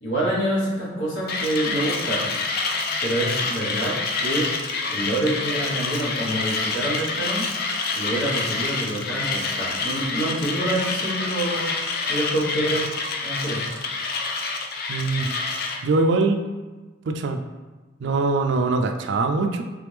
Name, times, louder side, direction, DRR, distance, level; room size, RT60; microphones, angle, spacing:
voice 1, 0.0-2.3 3.0-4.5 4.9-7.5 7.9-11.7 12.1-12.8 13.2-13.6, right 1 dB, 70° left, -5 dB, 1.3 m, -26 dB
Mechanisms, 1.3-15.8, left 4 dB, 50° left, 0.4 m, -27 dB
voice 2, 14.9-15.3 15.8-16.4 17.1-17.4 18.0-19.6, right 3 dB, 60° right, 6 dB, 0.3 m, -22 dB
3.4 x 3.4 x 3.3 m, 1.3 s
head